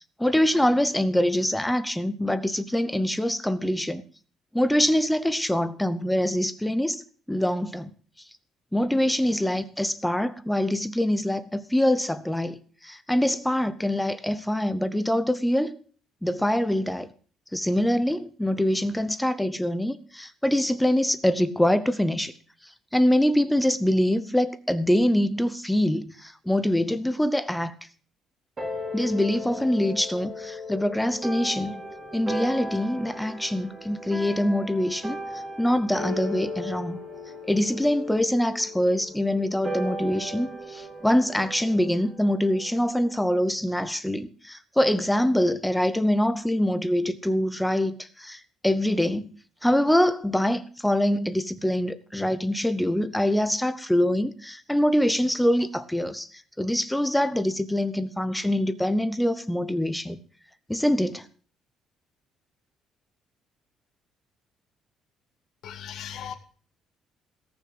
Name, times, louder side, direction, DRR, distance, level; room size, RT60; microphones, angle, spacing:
voice 1, 0.2-4.0 4.5-7.0 7.3-7.9 8.7-15.8 16.2-17.1 17.5-22.3 22.6-27.7 28.9-31.8 32.1-37.0 37.5-49.3 49.6-60.2 60.7-61.3, left 1 dB, 5° left, 0.7 m, -24 dB
sound 1, 28.6-43.3, left 1 dB, 25° right, 3.5 m, -36 dB
voice 2, 65.6-66.3, left 9 dB, 60° left, 1.9 m, -37 dB
18.0 x 6.2 x 7.9 m
cardioid pair, 165°, 0 cm